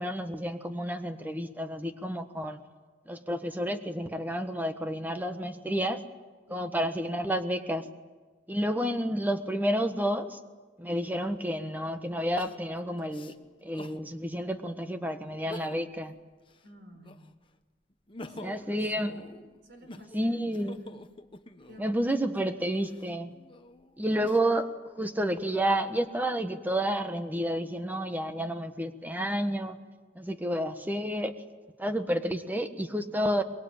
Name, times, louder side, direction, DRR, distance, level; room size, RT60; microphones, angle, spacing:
voice 1, 0.0-2.6 3.1-6.0 6.5-7.9 8.5-10.4 10.8-13.3 13.6-16.1 18.3-19.2 20.1-20.8 21.8-23.4 24.0-29.8 30.1-31.4 31.8-33.4, equal, 10° right, 8 dB, 1.4 m, -30 dB
Crying sobbing, 11.0-11.1 12.4-14.0 14.6-14.7 15.3-16.0 16.4-17.4 17.9-21.9 22.6-24.7 25.3-26.1, left 1 dB, 30° left, 1.1 m, -48 dB
voice 2, 16.6-17.2 18.2-19.2 19.6-20.4 20.8-21.0 21.7-22.8, equal, 65° right, 6 dB, 4.7 m, -51 dB
23.5 x 22.0 x 8.9 m, 1.4 s
head